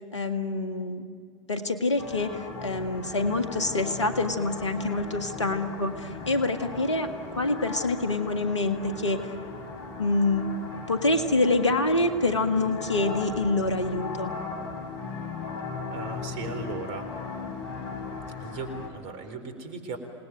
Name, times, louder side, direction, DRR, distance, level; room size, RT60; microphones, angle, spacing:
voice 1, 0.1-1.1 1.5-9.2 10.0-10.5 10.9-14.3, left 2 dB, 90° left, 7 dB, 1.8 m, -26 dB
sound 1, 2.0-18.9, left 4 dB, 70° left, 4.5 m, -37 dB
voice 2, 15.9-17.1 18.4-20.0, right 4 dB, 55° right, 8 dB, 4.1 m, -37 dB
27.5 x 19.5 x 9.3 m, 2.3 s
hypercardioid pair, 85°, 15 cm